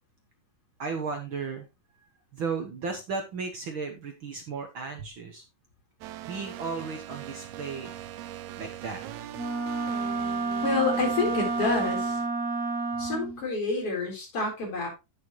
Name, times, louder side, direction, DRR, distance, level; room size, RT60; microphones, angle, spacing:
voice 1, 0.8-1.7 2.3-5.4 6.2-8.0 8.6-9.0, right 4 dB, 60° right, 4 dB, 1.4 m, -35 dB
sound 1, 6.0-12.3, right 12 dB, 75° right, 1.8 m, -41 dB
Wind instrument woodwind instrument, 9.3-13.4, right 3 dB, 40° right, 1.5 m, -30 dB
voice 2, 10.6-12.2 13.0-14.9, left 3 dB, 40° left, 0 dB, 4.8 m, -28 dB
9.2 x 8.7 x 3.1 m, 0.25 s
omnidirectional pair, 3.9 m